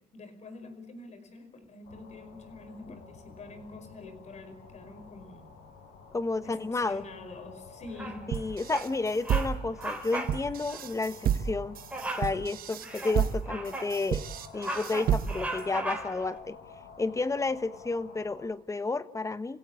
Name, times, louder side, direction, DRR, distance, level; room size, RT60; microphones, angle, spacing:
voice 1, 0.0-5.5 6.4-8.3, left 2 dB, 40° left, 10 dB, 5.4 m, -46 dB
sound 1, 1.8-18.5, left 5 dB, 75° left, 7.3 m, -51 dB
voice 2, 6.1-7.1 8.3-11.8 12.2-14.2 14.5-16.6 17.0-19.6, left 3 dB, 20° left, 13 dB, 1.2 m, -31 dB
Bird vocalization bird call bird song, 8.0-8.4 8.7-8.9 9.2-9.5 9.8-10.4 10.7-10.9 11.9-12.3 12.8-13.9 14.4-16.3, right 1 dB, 10° right, 3.8 m, -36 dB
sound 2, 8.3-15.6, right 9 dB, 60° right, 1.4 m, -31 dB
28.0 x 16.5 x 8.4 m, 0.93 s
cardioid pair, 110°, 17 cm